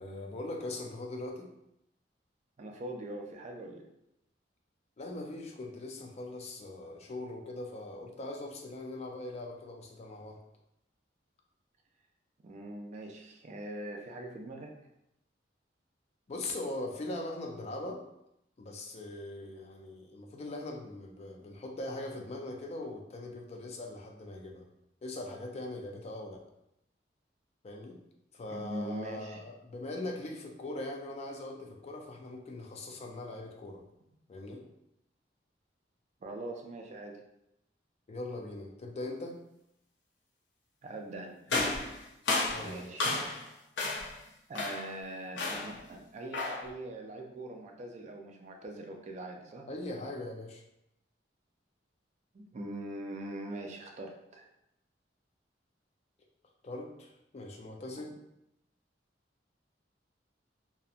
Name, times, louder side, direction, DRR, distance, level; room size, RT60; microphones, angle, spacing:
voice 1, 0.0-1.5 5.0-10.4 16.3-18.0 18.6-24.6 25.0-26.4 27.6-28.0 28.3-33.8 34.3-34.6 38.1-39.4 42.5-43.0 49.7-50.6 56.6-58.1, left 2 dB, 35° left, 2 dB, 0.4 m, -41 dB
voice 2, 2.6-3.8 12.4-14.7 28.5-29.4 36.2-37.2 40.8-41.3 42.5-43.1 44.5-49.7 52.3-54.5, right 1 dB, 40° right, 2 dB, 0.3 m, -42 dB
sound 1, 41.5-43.5 43.8-44.2 44.5-44.9 45.4-45.8 46.3-46.7, left 3 dB, 80° left, 0.6 m, -32 dB
2.7 x 2.1 x 2.4 m, 0.81 s
head